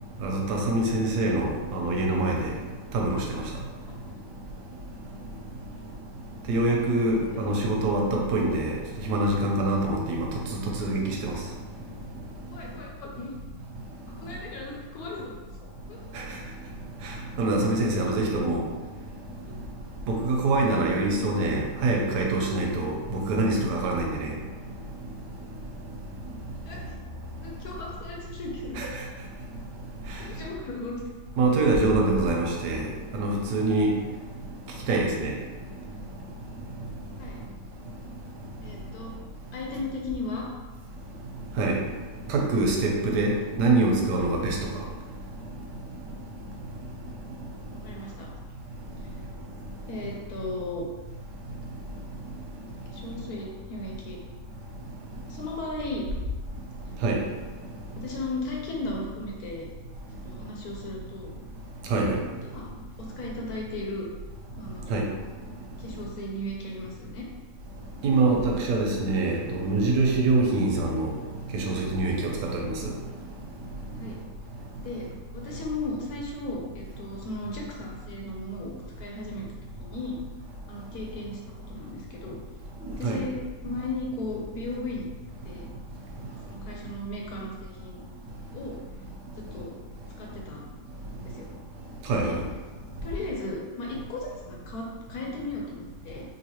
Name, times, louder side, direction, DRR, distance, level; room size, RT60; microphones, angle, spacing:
voice 1, 0.2-2.5 2.9-3.4 6.5-8.8 9.1-10.3 10.8-11.3 17.4-18.6 20.1-24.3 28.8-28.9 31.4-32.9 33.1-33.9 34.9-35.3 41.6-41.8 42.3-44.6 57.0-57.2 61.9-62.2 64.9-65.0 68.0-71.1 71.5-72.8 83.0-83.2 92.1-92.3, right 2 dB, 90° right, 0 dB, 1.2 m, -24 dB
voice 2, 7.1-7.6 12.5-13.3 14.2-15.3 15.9-16.0 18.1-18.4 19.4-19.5 23.8-23.9 26.6-27.0 27.4-28.8 30.2-31.0 31.6-31.7 37.2-37.4 38.6-39.1 39.5-40.5 47.7-48.3 49.0-49.1 49.9-50.9 52.9-54.2 55.3-56.0 58.0-59.7 60.2-61.3 62.0-62.7 63.0-64.1 64.6-64.9 65.8-67.3 72.3-72.4 73.9-74.2 74.8-75.1 75.3-78.7 79.0-79.5 79.8-80.2 80.7-82.4 82.9-85.1 85.4-85.7 86.3-88.0 88.5-88.8 89.5-89.7 90.2-90.6 91.3-91.5 92.2-92.4 93.0-96.2, left 2 dB, 70° left, -2 dB, 1.1 m, -36 dB
3.9 x 2.6 x 2.9 m, 1.3 s
omnidirectional pair, 1.7 m